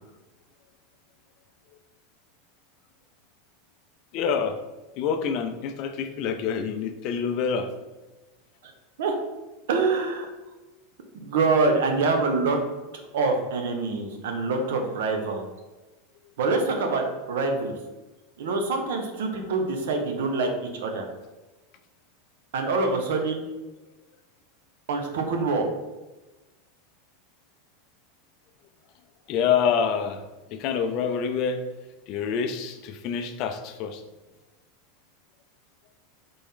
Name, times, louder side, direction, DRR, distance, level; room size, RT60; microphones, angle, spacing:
voice 1, 4.1-4.6 5.0-7.7 29.3-30.2 30.5-31.6 32.1-34.0, left 7 dB, 45° left, 7 dB, 0.4 m, -26 dB
voice 2, 9.7-10.3 11.1-12.6 13.1-15.4 16.4-17.8 18.4-21.1 22.5-23.4 24.9-25.6, right 3 dB, 85° right, 4 dB, 0.8 m, -25 dB
4.2 x 3.4 x 3.6 m, 1.1 s
supercardioid pair, 145°, 0 cm